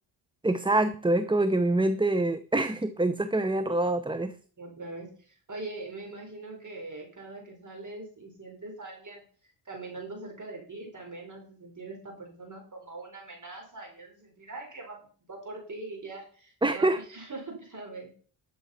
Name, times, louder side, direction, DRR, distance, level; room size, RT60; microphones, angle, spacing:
voice 1, 0.4-4.3 16.6-17.0, right 2 dB, 10° right, 11 dB, 0.7 m, -25 dB
voice 2, 4.6-9.2 9.6-15.0 15.3-18.1, right 2 dB, 40° right, 1 dB, 4.7 m, -42 dB
12.0 x 6.9 x 5.7 m, 0.44 s
cardioid pair, 75°, 48 cm